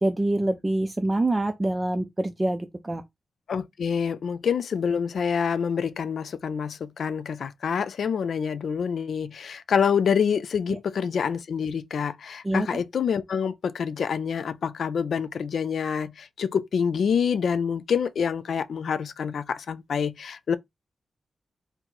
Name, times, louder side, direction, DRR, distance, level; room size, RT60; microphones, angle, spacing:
voice 1, 0.0-3.0 10.7-10.8 12.4-12.8, right 1 dB, 20° right, 0.4 m, -26 dB
voice 2, 3.5-20.6, left 7 dB, 80° left, 0.4 m, -27 dB
4.4 x 2.0 x 3.8 m
wide cardioid pair, 140°, 0 cm